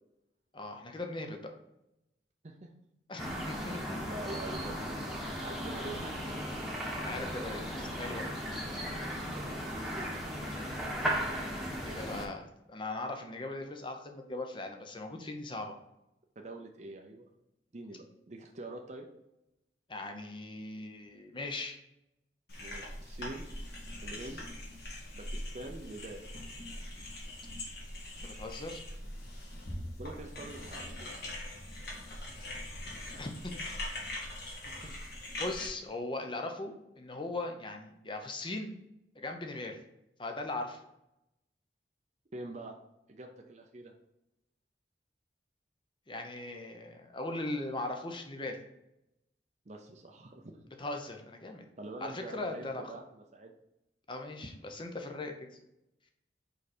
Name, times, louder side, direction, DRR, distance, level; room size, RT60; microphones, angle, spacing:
voice 1, 0.5-1.5 3.1-4.0 7.0-8.3 11.8-15.8 19.9-21.8 28.2-28.8 33.2-33.5 34.8-35.0 35.4-38.8 39.2-39.8 40.2-40.8 46.1-48.6 50.8-51.6 52.0-52.9 54.1-55.5, left 2 dB, 30° left, 4 dB, 0.8 m, -39 dB
sound 1, 3.2-12.3, equal, ahead, 1.2 m, -36 dB
voice 2, 3.6-5.1 5.4-6.2 9.3-10.1 16.4-17.3 17.7-19.1 22.6-23.5 24.0-24.4 25.1-26.2 30.0-31.1 34.5-35.0 42.3-42.7 43.1-43.9 49.7-50.5 51.8-53.5, right 2 dB, 40° right, 2 dB, 0.6 m, -45 dB
sound 2, 22.5-35.7, left 1 dB, 60° left, 2.0 m, -42 dB
5.3 x 4.8 x 4.3 m, 0.88 s
head